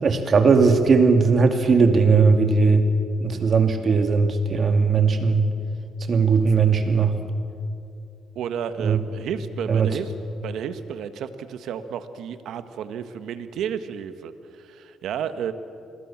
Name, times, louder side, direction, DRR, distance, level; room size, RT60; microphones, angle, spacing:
voice 1, 0.0-2.9 3.2-5.5 6.1-7.1 8.8-9.0 9.7-9.9, right 5 dB, 50° right, 6 dB, 2.6 m, -18 dB
voice 2, 8.3-10.1 10.4-14.3 14.6-15.5, right 8 dB, 80° right, 10 dB, 1.5 m, -32 dB
27.5 x 21.0 x 7.5 m, 2.6 s
cardioid pair, 90°, 0 cm